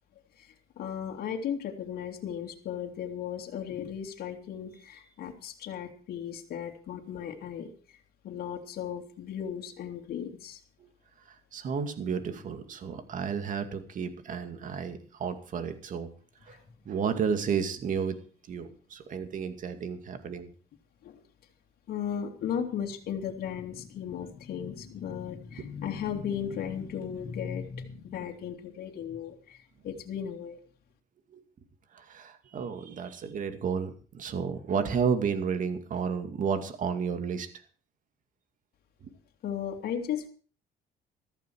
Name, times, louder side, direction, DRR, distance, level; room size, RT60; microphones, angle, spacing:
voice 1, 0.4-8.0 8.2-10.6 16.5-16.6 21.0-21.2 21.9-30.6 39.4-40.3, left 8 dB, 65° left, 1 dB, 2.6 m, -36 dB
voice 2, 11.5-16.1 16.5-16.6 16.9-18.2 18.5-20.5 31.3-31.4 31.9-37.5 39.0-39.1, right 6 dB, 50° right, 8 dB, 2.3 m, -32 dB
14.5 x 14.0 x 4.7 m, 0.39 s
cardioid pair, 110°, 17 cm